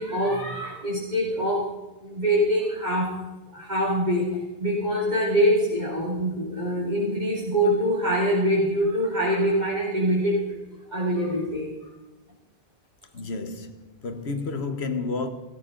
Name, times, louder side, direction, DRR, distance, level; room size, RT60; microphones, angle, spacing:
voice 1, 0.0-1.7 2.0-3.2 3.5-10.4 10.9-11.7, equal, 45° right, 2.7 m, -24 dB
voice 2, 13.1-15.3, left 3 dB, 85° left, 1.5 m, -31 dB
16.5 x 14.5 x 3.9 m
omnidirectional pair, 1.1 m